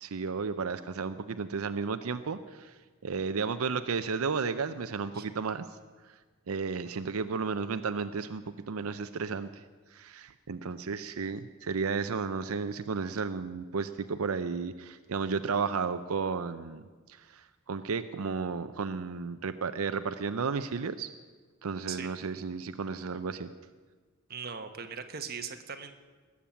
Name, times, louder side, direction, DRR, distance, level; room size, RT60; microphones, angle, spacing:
voice 1, 0.0-5.7 6.0-6.1 6.5-9.6 9.9-16.8 17.1-21.1 21.6-23.5, right 5 dB, 90° right, 10 dB, 0.6 m, -33 dB
voice 2, 24.3-25.9, right 6 dB, 45° right, 7 dB, 1.0 m, -39 dB
19.0 x 7.4 x 8.5 m, 1.4 s
head